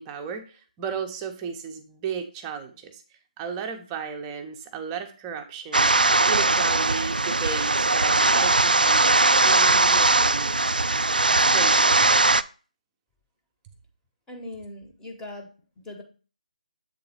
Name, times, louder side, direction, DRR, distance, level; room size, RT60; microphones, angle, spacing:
voice 1, 0.0-3.0 3.4-5.9 6.2-10.6 11.3-12.2, right 6 dB, 15° right, 5 dB, 0.8 m, -34 dB
sound 1, 5.7-12.4, right 3 dB, 85° right, 0.3 m, -20 dB
voice 2, 14.3-16.0, left 2 dB, 10° left, 2 dB, 1.1 m, -40 dB
7.7 x 3.8 x 4.3 m, 0.36 s
figure-of-eight pair, 150°, 5 cm